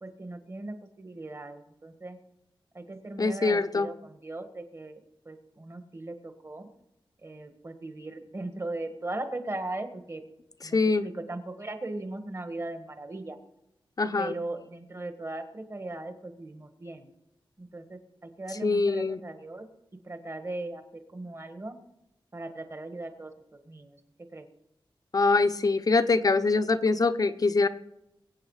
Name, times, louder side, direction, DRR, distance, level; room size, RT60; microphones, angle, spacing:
voice 1, 0.0-2.2 2.7-6.7 7.2-10.2 10.6-13.4 14.2-17.1 17.6-19.7 20.0-21.8 22.3-24.0 24.3-24.5, right 2 dB, 30° right, 7 dB, 1.6 m, -38 dB
voice 2, 3.2-3.9 10.7-11.0 14.0-14.3 18.6-19.2 25.1-27.7, left 3 dB, 45° left, 9 dB, 0.7 m, -24 dB
22.0 x 8.6 x 4.9 m, 0.86 s
wide cardioid pair, 120°, 9 cm